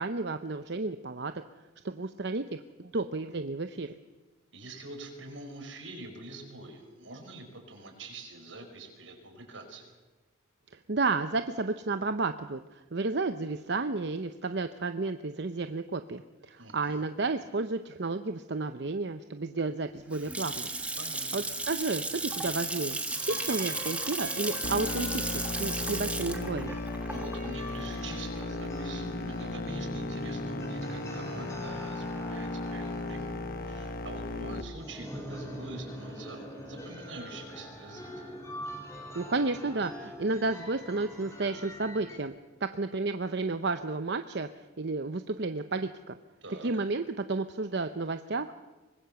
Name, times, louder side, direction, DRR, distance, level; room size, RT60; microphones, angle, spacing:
voice 1, 0.0-1.3 1.8-3.9 10.7-20.7 21.3-26.8 39.1-42.3 42.6-46.2 46.6-48.6, right 3 dB, 60° right, 9 dB, 0.8 m, -32 dB
voice 2, 4.5-9.9 16.6-17.0 21.0-21.5 27.1-33.4 33.6-38.4 46.4-46.7, right 2 dB, 85° right, 3 dB, 5.4 m, -45 dB
Water tap faucet / Sink (filling or washing) / Splash splatter, 19.9-28.7, right 2 dB, 5° right, 1.5 m, -35 dB
sound 1, 23.1-42.2, equal, 15° left, 3.8 m, -43 dB
sound 2, 24.6-34.6, left 2 dB, 50° left, 1.2 m, -36 dB
24.0 x 20.5 x 7.0 m, 1.2 s
head